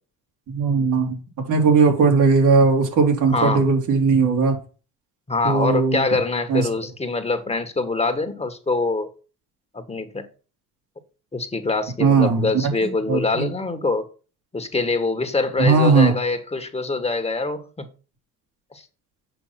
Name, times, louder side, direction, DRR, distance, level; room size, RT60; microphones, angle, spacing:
voice 1, 0.5-1.2 1.5-4.6 5.4-6.0 6.5-6.7 12.0-13.5 15.6-16.2, right 4 dB, 85° right, 3.2 m, -18 dB
voice 2, 3.3-3.6 5.3-9.1 9.7-10.3 11.3-14.1 14.5-17.9 18.7-18.8, left 3 dB, 20° left, 1.6 m, -24 dB
8.0 x 5.6 x 5.9 m
cardioid pair, 90°, 30 cm